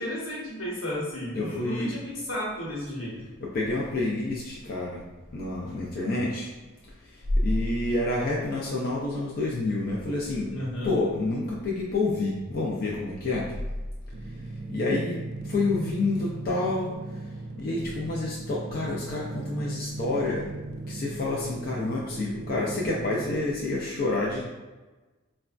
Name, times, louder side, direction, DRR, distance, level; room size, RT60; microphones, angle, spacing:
voice 1, 0.0-3.2 10.5-10.9, equal, 80° left, -5 dB, 1.1 m, -33 dB
voice 2, 1.3-1.9 3.4-5.0 5.3-6.5 7.4-10.6 10.8-13.5 14.7-15.1 15.4-16.9 17.6-20.5 20.9-24.5, left 2 dB, 45° left, -4 dB, 0.4 m, -28 dB
sound 1, 14.1-23.3, right 2 dB, 45° right, 0.3 m, -37 dB
4.0 x 2.2 x 2.4 m, 1.2 s
head